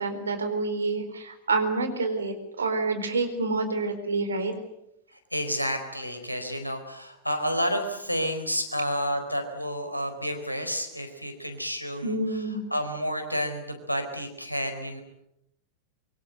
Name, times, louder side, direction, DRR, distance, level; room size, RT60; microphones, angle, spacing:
voice 1, 0.0-4.5 12.0-12.6, right 3 dB, 70° right, 8 dB, 4.3 m, -28 dB
voice 2, 5.1-12.2 12.7-15.0, equal, 90° left, 6 dB, 4.3 m, -30 dB
25.0 x 23.5 x 8.1 m, 0.80 s
figure-of-eight pair, 90°, 0 cm